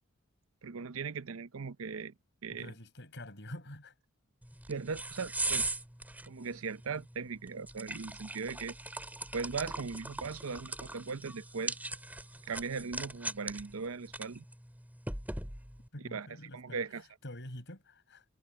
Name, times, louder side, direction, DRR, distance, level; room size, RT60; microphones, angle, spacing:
voice 1, 0.6-2.1 2.4-2.7 4.7-5.7 6.3-8.7 9.3-11.8 12.5-14.4 16.1-16.3 16.5-17.0, right 5 dB, 70° right, 0.7 m, -38 dB
voice 2, 2.5-4.0 15.9-18.2, left 1 dB, 55° left, 6.7 m, -47 dB
sound 1, 4.4-15.9, right 2 dB, 10° right, 2.7 m, -40 dB
head